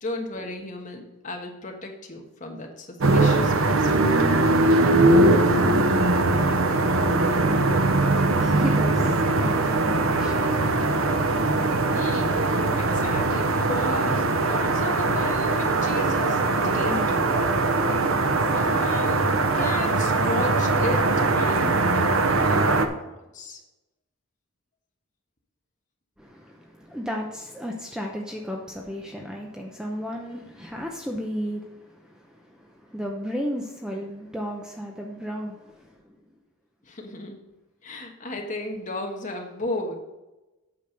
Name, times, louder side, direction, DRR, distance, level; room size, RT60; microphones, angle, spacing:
voice 1, 0.0-4.4 11.9-12.4 12.7-17.4 18.5-19.3 19.5-21.1 21.3-23.6 36.9-37.4 37.8-39.9, left 2 dB, 35° left, 2 dB, 1.3 m, -34 dB
sound 1, 3.0-22.9, right 2 dB, 65° right, 0.8 m, -21 dB
voice 2, 8.4-10.5 26.2-36.2, equal, 5° right, 0 dB, 0.7 m, -34 dB
8.6 x 6.2 x 5.2 m, 1.0 s
head